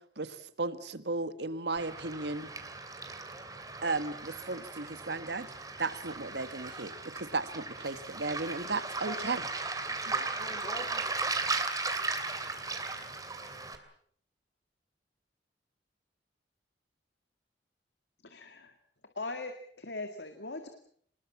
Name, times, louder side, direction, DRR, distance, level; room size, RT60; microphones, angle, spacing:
voice 1, 0.0-2.5 3.8-5.5 5.8-9.4, right 3 dB, 70° right, 12 dB, 1.6 m, -35 dB
Waves surf, 1.8-13.8, right 3 dB, 20° right, 2.8 m, -37 dB
voice 2, 9.9-11.9, left 1 dB, 30° left, 0 dB, 4.1 m, -47 dB
voice 3, 18.2-18.7 19.2-20.7, left 2 dB, 75° left, 6 dB, 2.2 m, -40 dB
26.0 x 21.0 x 7.4 m, 0.63 s
head